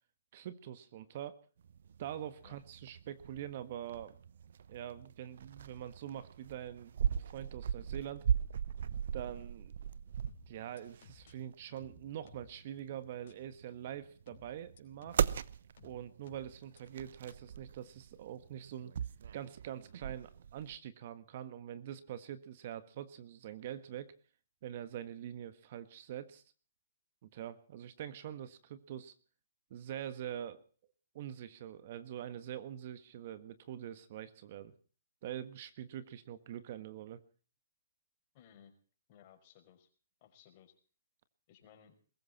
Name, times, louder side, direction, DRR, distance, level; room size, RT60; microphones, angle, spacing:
voice 1, 0.3-1.4 2.0-4.2 4.7-6.9 7.3-8.3 9.1-9.7 10.5-15.2 15.8-18.9 19.3-24.1 24.6-26.4 27.2-29.1 29.7-30.6 31.1-34.7 35.2-37.2, right 10 dB, 45° right, 12 dB, 1.7 m, -44 dB
sound 1, 1.6-20.8, right 8 dB, 65° right, 0.9 m, -39 dB
sound 2, 10.3-11.3 11.8-12.6 13.3-13.4 14.3-15.3 15.8-16.8 17.3-17.4, left 7 dB, 60° left, 4.7 m, -59 dB
voice 2, 38.3-38.7 39.1-39.9 40.2-40.7 41.5-41.9, left 9 dB, 40° left, 5 dB, 5.5 m, -60 dB
22.0 x 14.5 x 4.3 m, 0.41 s
hypercardioid pair, 150°, 0 cm